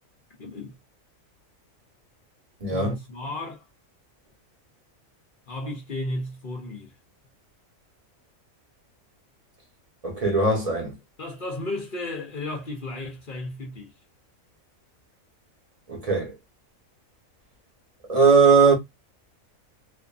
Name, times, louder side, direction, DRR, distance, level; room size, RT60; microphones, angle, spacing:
voice 1, 0.4-0.8 2.7-3.7 5.5-6.9 11.2-13.9, left 2 dB, 50° left, 0.7 m, -34 dB
voice 2, 2.6-2.9 10.0-11.0 15.9-16.4 18.1-18.7, right 4 dB, 30° right, 0.9 m, -19 dB
2.5 x 2.5 x 2.4 m
omnidirectional pair, 1.4 m